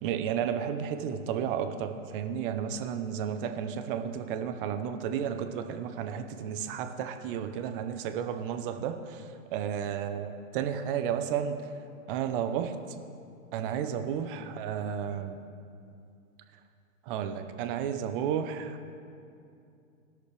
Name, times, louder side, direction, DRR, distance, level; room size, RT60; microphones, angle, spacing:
voice 1, 0.0-9.2 9.5-11.6 12.1-12.7 13.5-15.4 17.1-18.8, right 8 dB, 40° right, 7 dB, 0.9 m, -32 dB
18.5 x 6.5 x 3.4 m, 2.5 s
hypercardioid pair, 120°, 41 cm